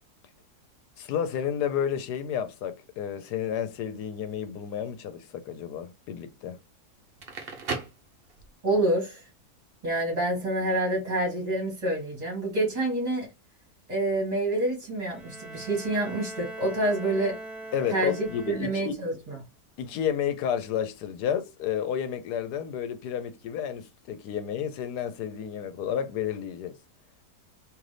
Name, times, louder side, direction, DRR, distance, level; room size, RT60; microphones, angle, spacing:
voice 1, 1.0-6.6 17.7-19.0 19.8-26.7, left 9 dB, 80° left, 1.2 m, -31 dB
Crackle, 7.0-8.7, right 4 dB, 45° right, 0.8 m, -36 dB
voice 2, 8.6-9.2 9.8-13.3 13.9-17.3 17.9-19.4, right 1 dB, 25° right, 2.0 m, -27 dB
Bowed string instrument, 15.1-19.0, right 2 dB, ahead, 0.7 m, -41 dB
3.9 x 2.9 x 3.3 m
omnidirectional pair, 1.7 m